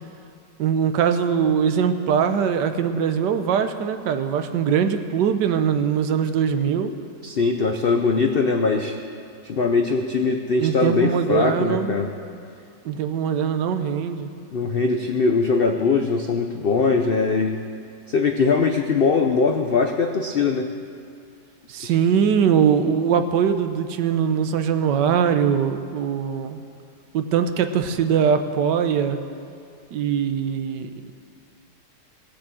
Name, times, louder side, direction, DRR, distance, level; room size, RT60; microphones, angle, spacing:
voice 1, 0.6-6.9 10.6-12.0 12.8-14.3 21.7-26.6 27.1-29.2 29.9-30.9, right 7 dB, 75° right, 9 dB, 1.4 m, -21 dB
voice 2, 7.2-9.0 9.4-12.1 14.5-17.6 18.1-20.7 21.8-21.9, left 4 dB, 80° left, 5 dB, 0.5 m, -21 dB
17.5 x 7.2 x 7.5 m, 2.5 s
omnidirectional pair, 1.9 m